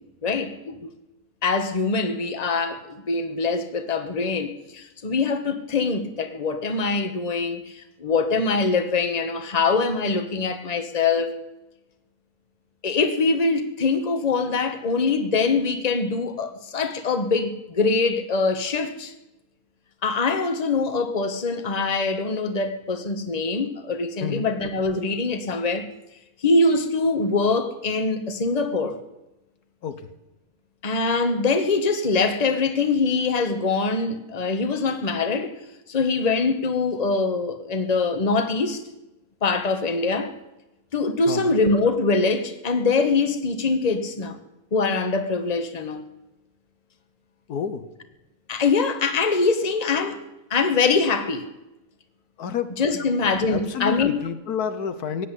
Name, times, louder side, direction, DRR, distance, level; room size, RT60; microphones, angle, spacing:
voice 1, 0.2-0.9 1.4-11.4 12.8-19.1 20.0-25.9 26.4-29.0 30.8-35.5 35.9-38.8 39.4-40.3 40.9-44.4 44.7-46.0 48.5-50.2 50.5-51.5 52.8-54.3, left 4 dB, 25° left, 1.2 m, -23 dB
voice 2, 47.5-47.8 52.4-53.1 53.5-55.3, left 7 dB, 75° left, 1.5 m, -29 dB
16.5 x 8.4 x 9.9 m
omnidirectional pair, 1.7 m